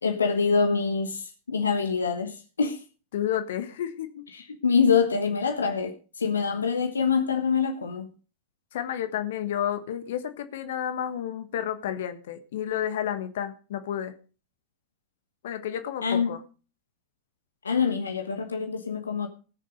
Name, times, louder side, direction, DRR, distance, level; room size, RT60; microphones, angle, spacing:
voice 1, 0.0-2.8 4.3-8.1 16.0-16.3 17.6-19.3, left 5 dB, 75° left, 1.2 m, -25 dB
voice 2, 3.1-4.2 8.7-14.1 15.4-16.4, left 10 dB, 55° left, 1.4 m, -31 dB
18.0 x 6.7 x 5.1 m
figure-of-eight pair, 90°, 0 cm